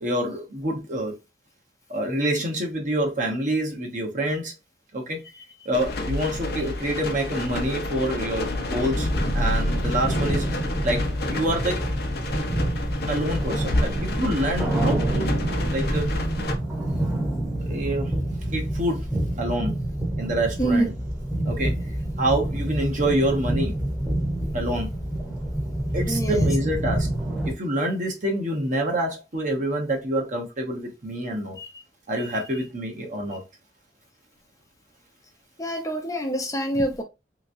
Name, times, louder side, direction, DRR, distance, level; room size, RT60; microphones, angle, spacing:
voice 1, 0.0-1.1 1.9-4.5 4.9-5.2 5.6-10.4 10.8-11.0 11.3-11.8 13.1-15.3 15.7-16.1 17.6-18.1 18.5-19.1 19.4-19.8 20.2-20.9 21.4-21.7 22.2-23.8 24.5-24.9 25.9-27.1 27.4-31.6 32.1-33.4, right 1 dB, 45° right, 0.9 m, -26 dB
sound 1, 5.7-16.6, left 1 dB, 55° left, 0.7 m, -28 dB
sound 2, 8.9-27.5, right 1 dB, 5° right, 0.9 m, -27 dB
voice 2, 26.1-26.5 31.6-31.7 32.2-32.3 35.6-37.0, right 1 dB, 20° left, 0.5 m, -26 dB
3.5 x 3.0 x 2.6 m
head